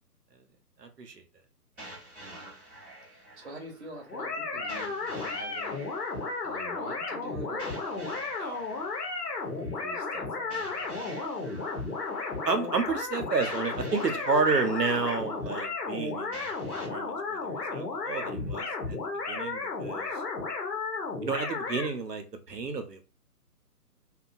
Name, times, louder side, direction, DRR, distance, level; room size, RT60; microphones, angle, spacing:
voice 1, 0.8-1.2 12.4-16.4 16.7-19.0 19.3-20.1 21.2-23.0, right 4 dB, 85° right, 6 dB, 0.8 m, -31 dB
sound 1, 1.8-16.9, right 1 dB, 5° right, 0.8 m, -48 dB
voice 2, 2.2-2.6 3.0-5.9 6.4-8.9 9.5-11.0 14.1-14.2 18.2-18.5, right 1 dB, 45° right, 0 dB, 0.9 m, -45 dB
sound 2, 4.1-21.9, left 3 dB, 80° left, 1.1 m, -34 dB
2.9 x 2.3 x 2.5 m, 0.34 s
figure-of-eight pair, 140°, 47 cm